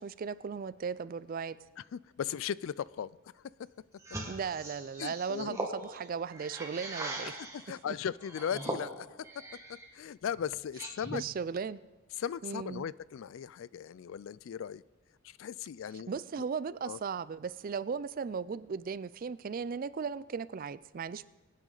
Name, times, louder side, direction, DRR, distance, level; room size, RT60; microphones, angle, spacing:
voice 1, 0.0-1.6 4.3-7.4 7.9-8.0 11.1-11.8 12.4-12.9 15.9-21.3, right 6 dB, 40° right, 17 dB, 0.3 m, -37 dB
voice 2, 1.9-3.1 5.0-5.6 7.7-9.1 9.9-11.2 12.2-14.8 15.4-16.1 16.8-17.0, left 8 dB, 60° left, 21 dB, 0.3 m, -37 dB
sound 1, 4.0-7.7 8.2-9.9 10.3-11.3, right 2 dB, 15° right, 1.5 m, -41 dB
23.0 x 9.3 x 3.9 m, 1.3 s
head